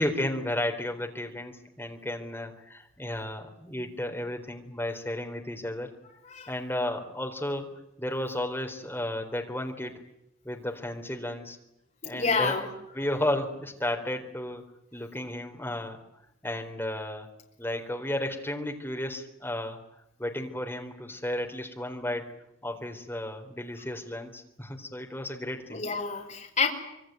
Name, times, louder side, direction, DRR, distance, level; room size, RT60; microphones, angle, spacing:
voice 1, 0.0-5.9 6.5-9.9 10.4-11.6 12.0-12.7 12.9-14.6 14.9-16.0 16.4-17.3 17.6-19.8 20.2-22.3 22.6-25.8, left 1 dB, 10° left, 3 dB, 4.0 m, -33 dB
voice 2, 12.0-12.7 25.7-26.7, left 4 dB, 35° left, 1 dB, 5.1 m, -28 dB
26.0 x 23.5 x 9.1 m, 0.84 s
head